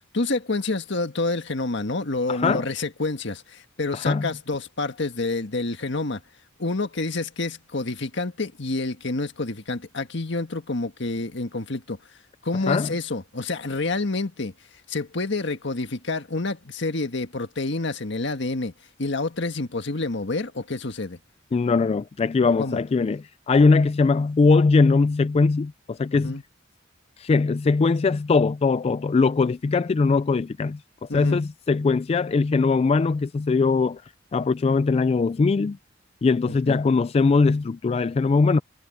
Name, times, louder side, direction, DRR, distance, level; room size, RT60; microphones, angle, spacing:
voice 1, 0.1-6.2 6.6-12.0 12.4-14.5 14.9-18.7 19.0-21.2 22.6-22.8 26.1-26.4 31.1-31.4 36.5-36.8, left 2 dB, 65° left, 1.7 m, -28 dB
voice 2, 2.3-2.7 3.9-4.3 12.7-12.9 21.5-26.4 27.2-34.0 34.3-35.8 36.2-38.6, left 4 dB, 30° left, 0.3 m, -21 dB
head